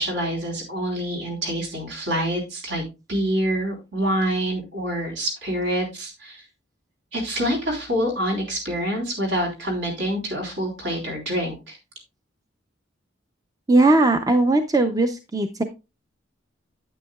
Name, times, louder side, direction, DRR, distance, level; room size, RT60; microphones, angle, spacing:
voice 1, 0.0-2.8 3.1-6.4 7.1-11.8, equal, 70° right, 0 dB, 3.7 m, -26 dB
voice 2, 13.7-15.6, right 2 dB, 20° right, 7 dB, 0.5 m, -19 dB
9.2 x 8.6 x 2.3 m, 0.27 s
head